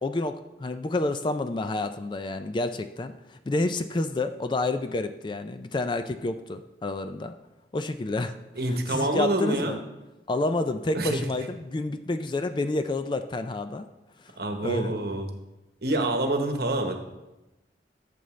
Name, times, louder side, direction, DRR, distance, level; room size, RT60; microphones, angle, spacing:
voice 1, 0.0-7.3 7.7-8.4 8.9-9.8 10.3-13.9 14.6-14.9, left 2 dB, 25° left, 9 dB, 0.3 m, -29 dB
voice 2, 8.5-9.8 10.9-11.2 14.4-15.3 15.8-17.0, right 1 dB, 60° right, 5 dB, 1.1 m, -26 dB
12.5 x 6.9 x 3.2 m, 0.99 s
head